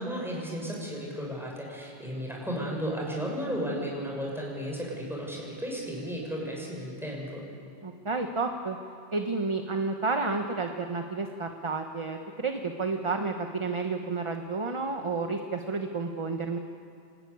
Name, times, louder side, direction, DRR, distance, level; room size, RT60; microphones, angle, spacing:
voice 1, 0.0-7.4, equal, ahead, -3 dB, 5.9 m, -34 dB
voice 2, 7.8-8.8 9.1-16.6, right 3 dB, 30° right, 5 dB, 1.0 m, -31 dB
27.0 x 13.5 x 9.5 m, 2.6 s
omnidirectional pair, 1.2 m